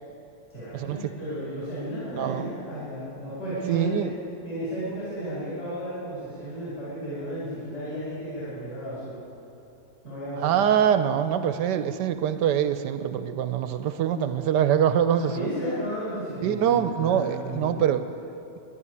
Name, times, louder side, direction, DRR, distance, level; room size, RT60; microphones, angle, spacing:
voice 1, 0.5-4.1 4.4-9.2 10.0-10.6 15.2-17.8, right 1 dB, 30° left, -10 dB, 5.3 m, -33 dB
voice 2, 2.2-2.5 3.7-4.1 10.4-15.5 16.4-18.1, right 9 dB, 70° right, 10 dB, 1.2 m, -24 dB
12.5 x 11.0 x 9.7 m, 2.8 s
omnidirectional pair, 2.0 m